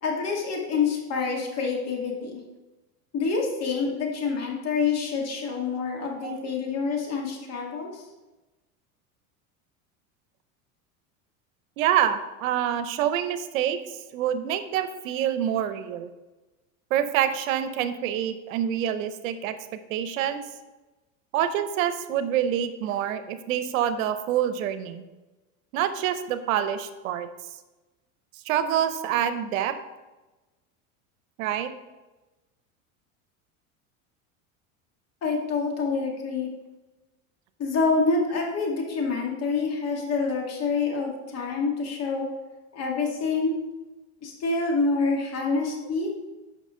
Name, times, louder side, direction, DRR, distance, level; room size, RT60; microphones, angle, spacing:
voice 1, 0.0-2.4 3.1-7.9 35.2-36.5 37.6-42.3 42.7-43.5 44.2-46.1, left 4 dB, 40° left, 0 dB, 2.2 m, -27 dB
voice 2, 6.0-6.4 11.8-13.8 14.1-16.1 16.9-19.6 19.9-20.4 21.3-25.0 25.7-27.3 28.5-29.8 31.4-31.7 45.5-45.6, right 10 dB, 85° right, 11 dB, 0.8 m, -26 dB
9.2 x 5.9 x 3.8 m, 1.1 s
supercardioid pair, 115°, 40 cm